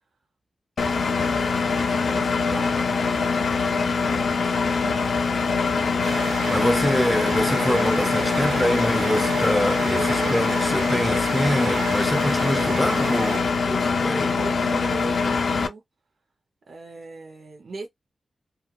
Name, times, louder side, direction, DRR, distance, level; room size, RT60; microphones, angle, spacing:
Engine, 0.8-15.7, left 4 dB, 70° left, 0.5 m, -23 dB
voice 1, 0.8-5.0 14.4-15.8 16.7-17.9, right 3 dB, 65° right, 0.7 m, -40 dB
sound 1, 5.2-13.9, right 5 dB, 90° right, 0.4 m, -32 dB
voice 2, 6.0-14.4, left 1 dB, 10° left, 0.4 m, -25 dB
2.4 x 2.2 x 2.9 m
wide cardioid pair, 110°, 0 cm